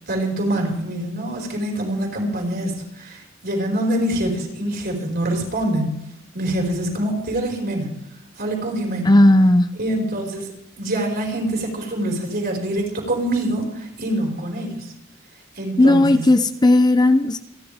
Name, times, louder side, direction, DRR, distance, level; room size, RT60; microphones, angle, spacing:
voice 1, 0.1-6.0 6.3-7.9 8.4-9.1 9.8-14.9 15.6-16.2, right 1 dB, 50° right, 0 dB, 5.6 m, -25 dB
voice 2, 9.0-9.7 15.8-17.4, left 1 dB, 20° left, 10 dB, 0.6 m, -14 dB
28.5 x 11.5 x 3.6 m, 0.83 s
head